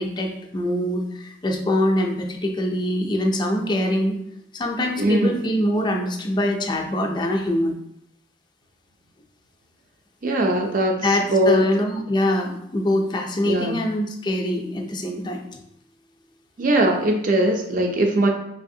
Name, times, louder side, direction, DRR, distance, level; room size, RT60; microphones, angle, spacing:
voice 1, 0.0-4.2 4.5-7.8 11.0-15.4, left 1 dB, 20° left, 2 dB, 0.4 m, -24 dB
voice 2, 5.0-5.4 10.2-11.0 11.3-11.7 13.4-13.8 16.6-18.3, right 1 dB, 45° right, 3 dB, 0.5 m, -20 dB
3.3 x 3.3 x 2.7 m, 0.78 s
head